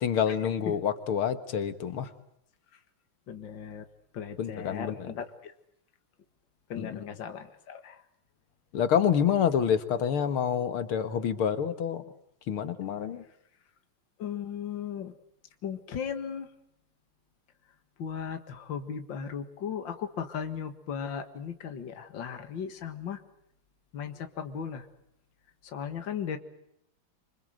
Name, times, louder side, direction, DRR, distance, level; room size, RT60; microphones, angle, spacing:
voice 1, 0.0-2.1 4.4-5.1 6.8-7.0 8.7-12.0 12.5-13.2, left 8 dB, 85° left, 10 dB, 2.4 m, -27 dB
voice 2, 3.3-3.8 4.1-5.5 6.7-8.0 14.2-15.1 15.6-16.5 18.0-23.2 23.9-24.9 25.6-26.4, left 7 dB, 60° left, 7 dB, 2.4 m, -37 dB
26.5 x 25.0 x 7.8 m, 0.76 s
omnidirectional pair, 2.3 m